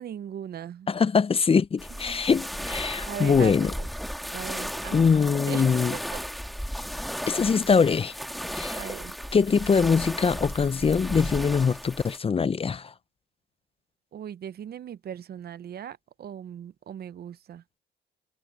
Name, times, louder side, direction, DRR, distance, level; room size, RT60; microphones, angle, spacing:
voice 1, 0.0-0.9 2.0-2.2 3.1-3.9 4.3-5.1 5.5-6.2 8.7-9.2 14.1-17.6, right 9 dB, 50° right, 0.6 m, -39 dB
voice 2, 0.9-3.7 4.9-6.0 7.3-8.1 8.5-8.8 9.3-12.9, left 5 dB, 30° left, 0.5 m, -23 dB
sound 1, 1.8-12.2, equal, ahead, 2.3 m, -35 dB
cardioid pair, 90°, 20 cm